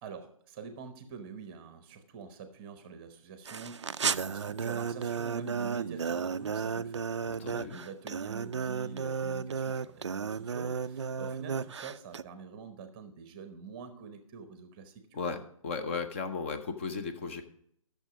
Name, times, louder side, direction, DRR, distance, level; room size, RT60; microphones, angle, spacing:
voice 1, 0.0-7.1 7.4-15.0, right 5 dB, 15° right, 8 dB, 0.9 m, -46 dB
sound 1, 3.5-12.2, right 6 dB, 55° right, 0.4 m, -34 dB
voice 2, 7.3-7.8 15.1-17.4, left 4 dB, 20° left, 8 dB, 0.8 m, -36 dB
12.0 x 6.8 x 4.9 m, 0.70 s
figure-of-eight pair, 150°, 18 cm